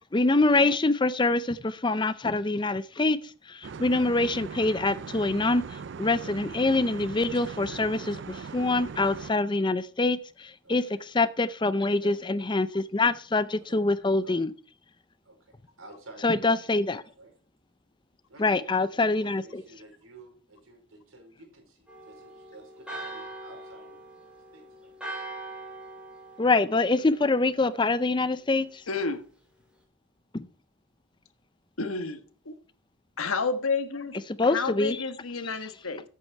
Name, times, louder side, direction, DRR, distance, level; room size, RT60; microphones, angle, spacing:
voice 1, 0.1-3.2 3.5-10.8 11.1-14.5 16.2-17.0 18.4-19.6 26.4-28.8 30.3-30.5 34.3-35.0, left 2 dB, 20° left, 0.5 m, -25 dB
sound 1, 3.6-9.3, right 5 dB, 55° right, 0.4 m, -40 dB
voice 2, 10.6-11.0 11.8-12.2 13.7-13.8 14.2-14.4 15.2-17.3 18.3-18.6 18.9-24.9, right 2 dB, 80° right, 4.8 m, -52 dB
Church bell, 21.9-27.6, right 2 dB, 5° right, 2.9 m, -42 dB
voice 3, 28.9-29.2 31.8-32.2 32.4-32.5 33.2-36.0, left 4 dB, 90° left, 1.3 m, -30 dB
14.0 x 8.4 x 4.6 m
head